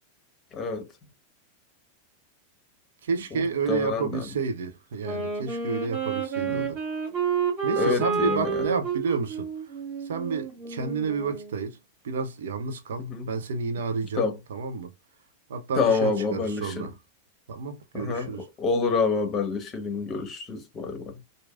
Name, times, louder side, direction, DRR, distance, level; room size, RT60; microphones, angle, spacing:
voice 1, 0.5-0.9 3.3-3.4 3.7-4.3 6.4-6.7 7.8-8.6 13.0-13.3 14.2-14.4 15.7-16.9 17.9-21.2, left 4 dB, 25° left, 1.0 m, -27 dB
voice 2, 3.0-6.8 7.6-9.5 10.0-11.8 12.0-14.2 14.5-14.9 15.5-16.9 17.5-18.4, right 5 dB, 60° right, 0.6 m, -30 dB
Wind instrument woodwind instrument, 5.0-11.6, right 6 dB, 40° right, 2.3 m, -30 dB
4.5 x 2.7 x 2.4 m
figure-of-eight pair, 90°, 0 cm